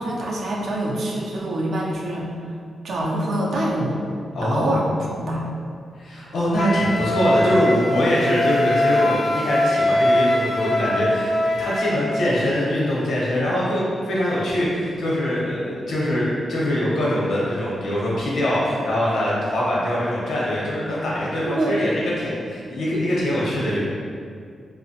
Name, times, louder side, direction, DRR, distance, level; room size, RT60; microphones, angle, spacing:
voice 1, 0.0-2.3 2.8-4.0 4.4-5.5 21.4-21.9, right 1 dB, 70° right, -3 dB, 0.5 m, -25 dB
voice 2, 4.3-4.7 5.9-23.8, equal, 75° left, -6 dB, 0.8 m, -23 dB
Wind instrument woodwind instrument, 6.5-12.0, left 1 dB, 35° left, 0.3 m, -21 dB
2.9 x 2.1 x 2.8 m, 2.3 s
cardioid pair, 105°, 0 cm